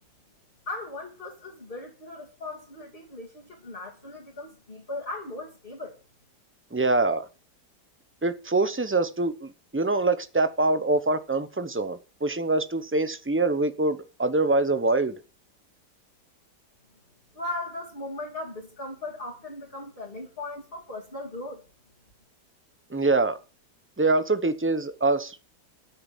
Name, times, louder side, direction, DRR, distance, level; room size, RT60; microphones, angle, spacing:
voice 1, 0.7-6.0 17.3-21.6, left 2 dB, 30° left, 3.2 m, -38 dB
voice 2, 6.7-7.3 8.2-15.1 22.9-23.4 24.0-25.4, right 2 dB, 15° right, 0.5 m, -24 dB
12.5 x 6.9 x 7.2 m
omnidirectional pair, 1.8 m